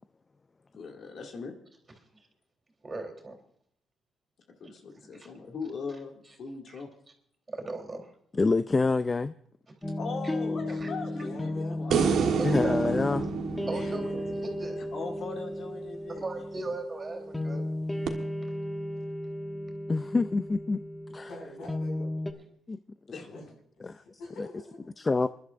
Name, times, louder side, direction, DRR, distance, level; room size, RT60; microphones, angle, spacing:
voice 1, 0.8-1.5 4.6-6.9 10.0-12.6 13.7-14.2 14.9-16.3 23.1-23.3, left 4 dB, 55° left, 1 dB, 2.3 m, -40 dB
voice 2, 2.8-3.4 5.1-5.3 6.7-6.8 7.5-8.1 10.7-10.9 12.2-12.8 13.7-14.8 16.1-17.6, right 2 dB, 30° right, 2 dB, 3.5 m, -38 dB
voice 3, 8.3-9.3 12.4-13.2 19.9-20.8 21.1-21.3 22.7-22.8 23.8-24.0 25.1-25.3, left 3 dB, 25° left, 12 dB, 0.4 m, -26 dB
sound 1, 9.8-22.3, left 1 dB, 10° left, 1.2 m, -34 dB
voice 4, 10.4-11.8 21.3-22.1 23.2-23.6 23.8-24.8, left 2 dB, 80° left, 0 dB, 5.8 m, -43 dB
sound 2, 11.9-15.2 18.1-18.2, right 7 dB, 75° right, 1.4 m, -29 dB
28.0 x 11.5 x 2.5 m, 0.67 s
cardioid pair, 90°, 0 cm